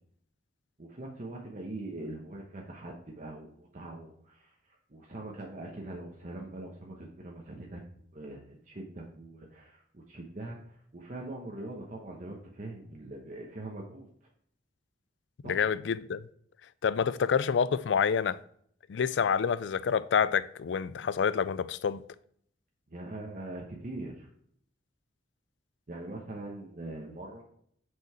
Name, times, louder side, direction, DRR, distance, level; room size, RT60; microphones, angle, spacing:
voice 1, 0.8-7.8 8.1-14.1 15.4-15.6 22.9-24.3 25.9-27.4, right 2 dB, 45° right, 1.1 m, -42 dB
voice 2, 15.5-16.3 16.8-18.4 18.9-22.0, left 6 dB, 80° left, 0.4 m, -28 dB
6.4 x 5.5 x 4.4 m
head